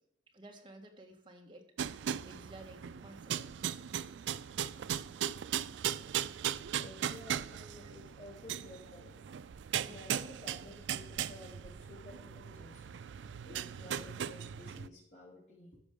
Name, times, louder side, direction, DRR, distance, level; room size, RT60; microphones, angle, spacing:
voice 1, 0.3-1.7 2.2-3.4, right 1 dB, 25° right, 1 dB, 1.5 m, -53 dB
sound 1, 1.8-14.9, right 9 dB, 70° right, 0.3 m, -38 dB
voice 2, 6.8-9.2 9.8-13.1 13.4-15.8, left 2 dB, 60° left, -7 dB, 3.2 m, -53 dB
13.5 x 5.4 x 5.1 m, 0.80 s
head